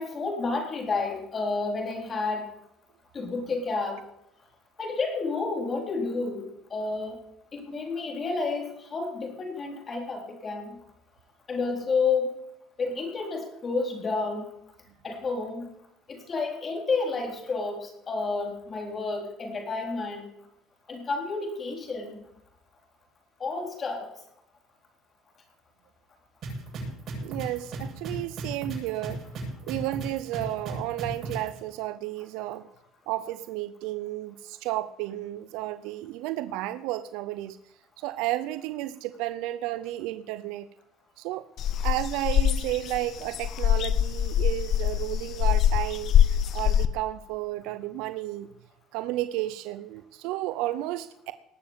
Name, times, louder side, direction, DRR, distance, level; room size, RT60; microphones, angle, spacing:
voice 1, 0.0-2.5 3.1-4.0 4.8-6.5 6.7-7.2 7.5-10.8 11.5-12.4 12.8-14.5 15.0-15.7 16.1-20.3 20.9-22.2 23.4-24.1, left 4 dB, 35° left, 2 dB, 3.9 m, -30 dB
sound 1, 26.4-31.5, right 3 dB, 50° right, 7.8 m, -35 dB
voice 2, 27.2-29.2 29.6-32.7 33.1-37.6 38.0-40.7 41.2-41.5 41.8-48.5 48.9-51.3, right 15 dB, 80° right, 12 dB, 0.6 m, -32 dB
sound 2, 41.6-46.9, left 10 dB, 55° left, 0.7 m, -23 dB
19.0 x 7.0 x 7.3 m, 0.80 s
supercardioid pair, 100°, 0 cm